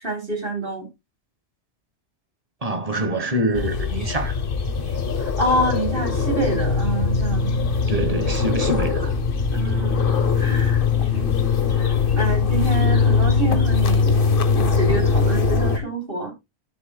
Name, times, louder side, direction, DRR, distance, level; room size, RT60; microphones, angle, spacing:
voice 1, 0.0-0.9 5.2-7.6 9.5-10.0 10.4-10.8 11.1-11.3 11.8-14.2 14.6-16.3, right 2 dB, 50° right, 3.7 m, -27 dB
voice 2, 2.6-4.4 7.9-9.1, right 1 dB, 35° right, 1.7 m, -25 dB
sound 1, 3.5-15.8, left 5 dB, 55° left, 1.2 m, -21 dB
12.5 x 7.2 x 2.3 m
omnidirectional pair, 1.2 m